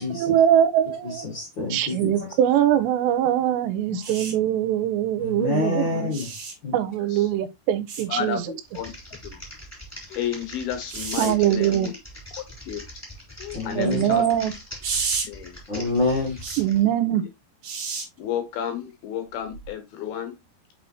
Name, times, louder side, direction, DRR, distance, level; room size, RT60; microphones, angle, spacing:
voice 1, 0.0-1.3 1.7-6.1 6.7-8.4 11.2-11.9 13.8-14.5 16.6-17.2, right 11 dB, 90° right, 2.9 m, -22 dB
voice 2, 1.0-2.3 3.9-4.0 5.2-6.2 6.6-6.7 13.5-14.2 15.7-16.4, left 2 dB, 40° left, 1.8 m, -27 dB
sound 1, 4.0-4.3 6.1-6.5 7.9-8.0 10.9-11.3 14.8-15.3 16.4-16.6 17.6-18.0 19.5-19.7, right 5 dB, 55° right, 2.2 m, -30 dB
voice 3, 8.1-8.9 9.2-9.4 10.1-11.9 12.6-12.8 13.4-14.3 15.2-15.6 17.2-17.3 18.2-20.4, left 8 dB, 75° left, 2.5 m, -31 dB
Typing, 8.6-16.8, left 1 dB, 5° left, 2.5 m, -42 dB
5.9 x 5.6 x 2.9 m
omnidirectional pair, 5.0 m